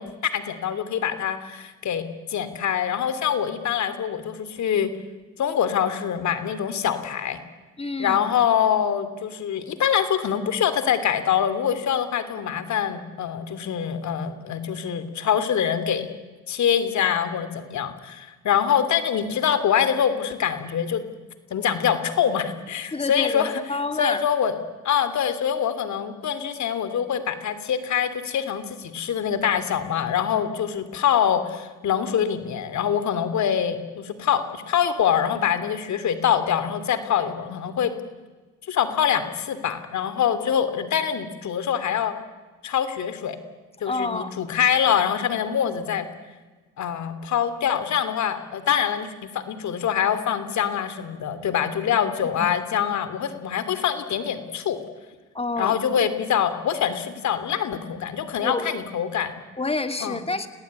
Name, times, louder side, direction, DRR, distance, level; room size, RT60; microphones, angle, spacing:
voice 1, 0.0-4.9 5.4-7.4 8.0-16.1 16.5-21.0 21.5-23.6 24.0-24.6 24.8-37.9 38.7-42.1 42.6-43.4 43.8-46.1 46.8-54.8 55.6-59.4 60.0-60.2, left 8 dB, 70° left, 11 dB, 3.0 m, -24 dB
voice 2, 7.8-8.2 22.9-24.2 43.8-44.3 52.4-52.5 55.3-55.7 58.4-58.8 59.6-60.5, left 3 dB, 20° left, 9 dB, 2.4 m, -28 dB
29.0 x 18.5 x 9.7 m, 1.3 s
cardioid pair, 90°, 30 cm